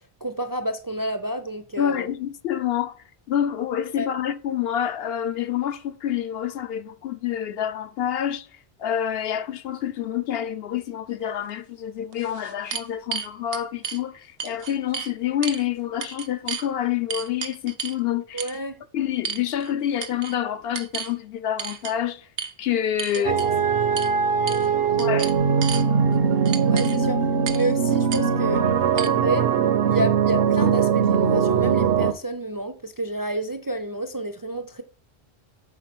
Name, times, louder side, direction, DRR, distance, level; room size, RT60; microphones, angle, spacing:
voice 1, 0.2-2.1 4.0-4.1 18.3-18.8 23.1-23.3 26.6-27.2 27.5-28.6 28.9-29.5 29.9-34.8, right 1 dB, 30° right, 0.4 m, -29 dB
voice 2, 1.8-3.0 3.3-8.5 8.8-18.4 18.9-22.3 22.6-23.5 25.0-25.3, left 10 dB, 70° left, 0.8 m, -27 dB
sound 1, 11.5-11.6 12.1-14.0 14.4-15.1 15.4-15.6 16.0-16.7 17.1-18.0 18.4-18.6 19.2-19.7 20.0-20.4 20.7-21.1 21.6-21.9 22.4-22.5 23.0-23.5 24.0-24.1 24.5-24.7 25.0-25.8 26.5-27.0 27.5-27.7 28.1-28.2 29.0-29.1, right 7 dB, 90° right, 1.0 m, -32 dB
sound 2, 23.2-32.1, right 6 dB, 65° right, 0.9 m, -21 dB
7.3 x 4.4 x 6.0 m
omnidirectional pair, 1.1 m